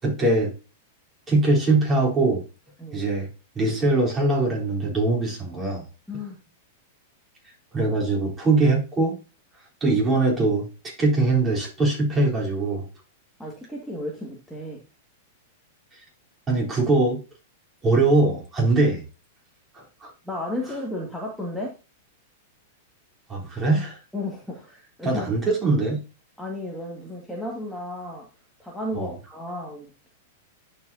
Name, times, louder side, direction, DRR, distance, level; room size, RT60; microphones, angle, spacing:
voice 1, 0.0-0.5 1.3-2.4 2.9-3.3 3.5-5.9 7.7-9.2 9.8-12.9 16.5-17.2 17.8-19.1 19.7-20.1 23.3-24.0 25.0-26.0 28.9-29.1, right 2 dB, 20° right, -2 dB, 3.7 m, -22 dB
voice 2, 13.4-14.8 20.2-21.7 24.1-25.4 26.4-28.3 28.6-29.9, left 1 dB, ahead, -3 dB, 1.9 m, -33 dB
10.5 x 5.0 x 2.7 m, 0.32 s
hypercardioid pair, 115°, 0 cm